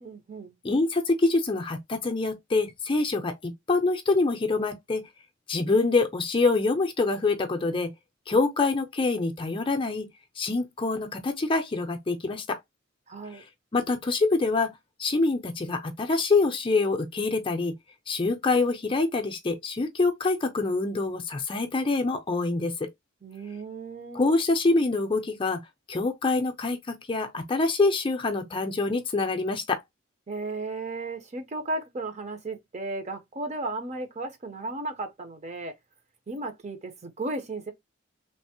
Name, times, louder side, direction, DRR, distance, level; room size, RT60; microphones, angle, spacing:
voice 1, 0.0-0.6 13.1-13.4 23.2-24.3 30.3-35.7 36.3-37.7, right 2 dB, 35° right, 0.6 m, -35 dB
voice 2, 0.6-5.1 5.5-7.9 8.3-10.1 10.4-12.6 13.7-14.7 15.0-17.7 18.1-22.9 24.1-25.6 25.9-29.8, left 3 dB, 25° left, 0.5 m, -25 dB
3.2 x 2.0 x 2.7 m
head